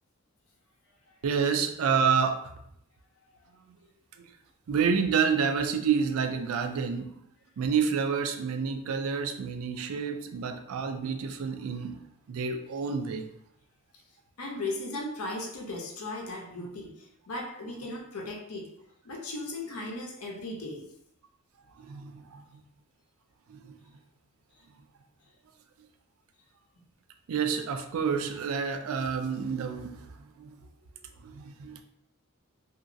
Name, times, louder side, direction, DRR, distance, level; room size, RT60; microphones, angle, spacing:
voice 1, 1.2-2.5 3.7-3.8 4.2-4.3 4.7-7.1 7.6-13.3 16.6-16.7 21.8-22.4 23.5-23.8 27.3-30.6 31.2-31.8, right 6 dB, 70° right, 7 dB, 0.4 m, -29 dB
voice 2, 14.4-16.9 17.3-18.7 19.0-20.8, left 2 dB, 80° left, 0 dB, 0.7 m, -36 dB
2.9 x 2.5 x 2.6 m, 0.72 s
head